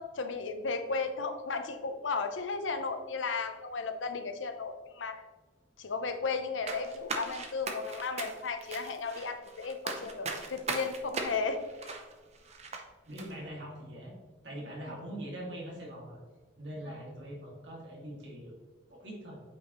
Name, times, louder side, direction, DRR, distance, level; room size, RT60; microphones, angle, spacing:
voice 1, 0.0-5.2 5.8-11.9, left 4 dB, 80° left, 8 dB, 0.7 m, -35 dB
sound 1, 6.7-12.8 13.2-13.3, right 4 dB, 35° right, 0.7 m, -39 dB
voice 2, 13.1-14.2 14.4-16.2 16.6-18.6 18.9-19.4, right 1 dB, 65° right, -2 dB, 2.2 m, -42 dB
8.5 x 5.1 x 3.1 m, 1.4 s
head